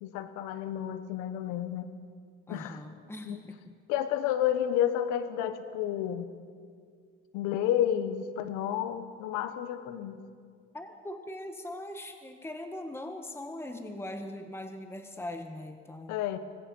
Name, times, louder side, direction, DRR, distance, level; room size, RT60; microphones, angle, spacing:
voice 1, 0.0-1.9 2.5-2.8 3.2-3.4 3.9-6.3 7.3-10.2 16.1-16.4, left 10 dB, 85° left, 10 dB, 1.3 m, -30 dB
voice 2, 2.5-3.8 10.7-16.2, left 1 dB, 10° left, 5 dB, 1.6 m, -41 dB
25.0 x 19.0 x 5.5 m, 2.1 s
supercardioid pair, 85°, 30 cm